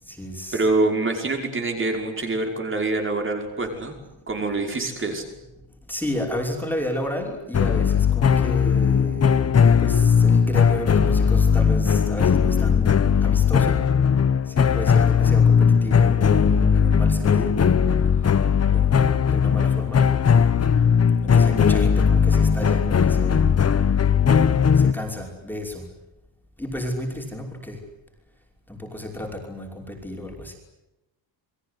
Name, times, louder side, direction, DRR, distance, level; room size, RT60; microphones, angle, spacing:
voice 1, 0.0-0.7 5.9-9.3 9.8-13.8 14.5-17.5 18.2-18.4 18.7-20.0 21.2-23.5 24.7-25.9 26.6-27.8 28.7-30.6, left 1 dB, 5° left, 0 dB, 5.6 m, -32 dB
voice 2, 0.5-3.9 4.3-5.2, right 2 dB, 25° right, 4 dB, 5.5 m, -25 dB
sound 1, 7.5-24.9, left 7 dB, 30° left, 1.3 m, -18 dB
29.5 x 23.0 x 8.2 m, 0.94 s
cardioid pair, 175°, 48 cm